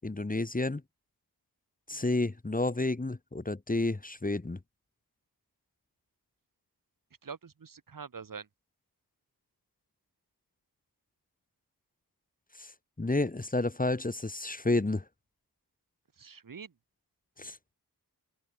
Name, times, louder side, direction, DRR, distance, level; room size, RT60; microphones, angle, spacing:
voice 1, 0.0-0.8 1.9-4.6 12.6-12.7 13.0-15.0 17.4-17.6, left 2 dB, 20° left, 1.3 m, -30 dB
voice 2, 7.2-8.5 16.2-16.7, right 6 dB, 55° right, 1.2 m, -45 dB
open air
cardioid pair, 45°, 39 cm